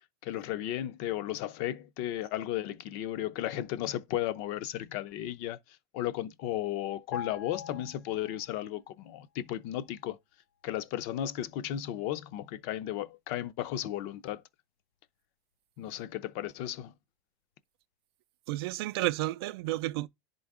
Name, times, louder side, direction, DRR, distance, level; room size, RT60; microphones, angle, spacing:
voice 1, 0.2-10.2 10.6-14.4 15.8-16.9, left 12 dB, 50° left, 0.5 m, -35 dB
sound 1, 7.1-8.7 9.0-9.2, left 8 dB, 70° left, 1.3 m, -42 dB
voice 2, 18.5-20.1, right 17 dB, 75° right, 0.4 m, -31 dB
10.5 x 3.8 x 3.6 m
supercardioid pair, 155°, 13 cm